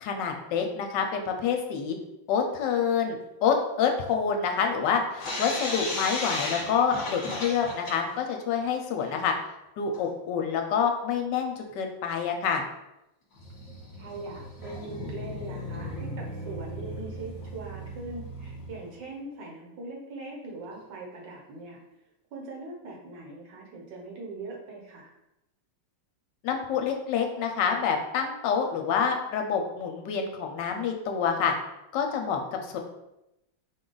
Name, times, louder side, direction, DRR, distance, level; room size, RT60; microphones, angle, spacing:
voice 1, 0.0-2.0 2.3-9.3 9.8-12.6 26.4-31.5 31.9-32.4 32.7-32.8, left 6 dB, 75° left, 4 dB, 1.2 m, -27 dB
sound 1, 5.2-8.3 8.6-8.7 8.9-9.0 9.9-10.0 11.1-11.2 11.7-11.8 12.2-12.3 13.4-19.0, left 1 dB, 50° left, 1.2 m, -36 dB
voice 2, 9.0-9.3 13.9-21.8 22.3-25.1, right 3 dB, 70° right, -1 dB, 1.6 m, -41 dB
5.0 x 2.3 x 3.8 m, 0.90 s
omnidirectional pair, 2.0 m